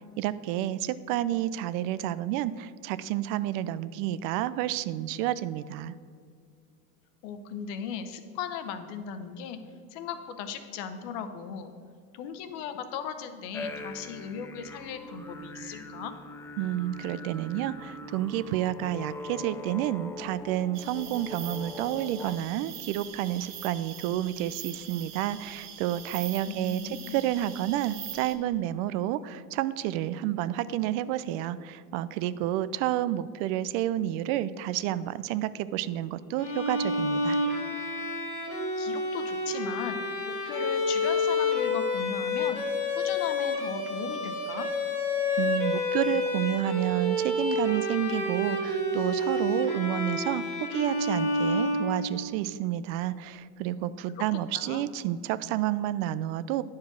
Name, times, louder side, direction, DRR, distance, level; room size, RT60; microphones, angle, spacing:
voice 1, 0.0-5.9 16.6-37.4 45.4-50.4 50.7-56.6, right 13 dB, 60° right, 16 dB, 0.5 m, -30 dB
voice 2, 7.2-9.6 9.9-11.7 12.1-16.1 26.5-27.2 38.8-40.0 40.3-42.6 42.9-44.7 53.8-54.2 54.5-54.9, left 7 dB, 60° left, 9 dB, 1.0 m, -37 dB
sound 1, 13.5-22.4, left 2 dB, 5° left, 0.4 m, -42 dB
sound 2, 20.7-28.3, right 9 dB, 90° right, 1.0 m, -43 dB
Bowed string instrument, 36.4-52.4, left 2 dB, 90° left, 1.7 m, -29 dB
9.5 x 4.7 x 6.1 m, 2.1 s
hypercardioid pair, 90°, 45 cm